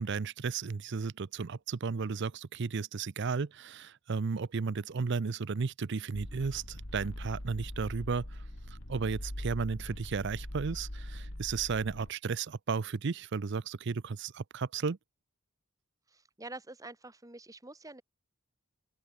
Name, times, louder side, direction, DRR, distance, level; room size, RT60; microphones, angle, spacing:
voice 1, 0.0-8.4 8.9-15.0, right 5 dB, 60° right, 0.5 m, -34 dB
sound 1, 6.1-12.1, left 1 dB, 70° left, 3.5 m, -42 dB
voice 2, 16.1-18.0, right 2 dB, 15° right, 1.5 m, -47 dB
open air
head